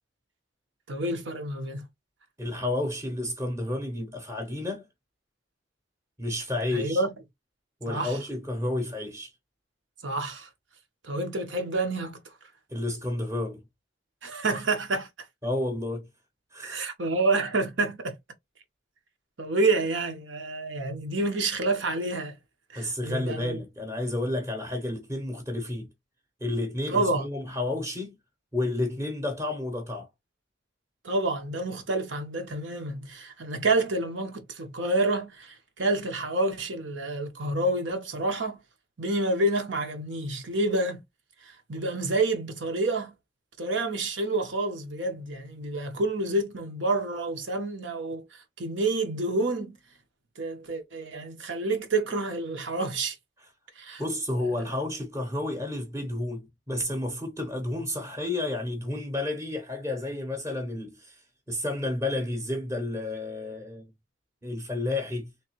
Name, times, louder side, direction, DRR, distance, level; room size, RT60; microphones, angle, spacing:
voice 1, 0.9-1.9 6.7-7.1 7.9-8.2 10.0-10.5 11.0-12.2 14.2-15.1 16.6-18.2 19.4-22.4 22.7-23.6 26.9-27.3 31.0-38.6 39.0-41.0 41.4-43.1 43.6-49.8 50.4-53.2 53.8-54.0 54.4-54.5, right 2 dB, 85° right, 1.0 m, -28 dB
voice 2, 2.4-4.9 6.2-7.0 7.8-9.3 12.7-13.6 15.4-16.1 16.5-16.8 22.7-25.9 26.4-28.1 28.5-30.1 54.0-63.9 64.4-65.3, left 2 dB, 15° right, 0.8 m, -31 dB
3.4 x 3.2 x 2.9 m
head